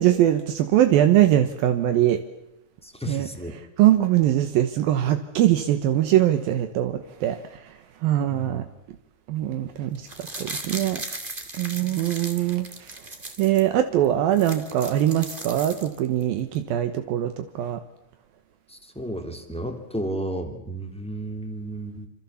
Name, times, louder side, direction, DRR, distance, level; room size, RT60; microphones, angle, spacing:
voice 1, 0.0-2.2 3.1-3.3 3.8-8.6 9.3-11.0 11.6-12.9 13.4-17.8, right 12 dB, 75° right, 8 dB, 2.3 m, -22 dB
voice 2, 2.8-3.6 8.3-8.6 18.7-22.1, right 1 dB, ahead, 4 dB, 1.3 m, -33 dB
sound 1, 9.9-13.6 14.0-14.1 14.3-16.2 16.5-16.6, right 2 dB, 25° right, 1.0 m, -37 dB
27.0 x 27.0 x 7.1 m, 0.84 s
omnidirectional pair, 5.6 m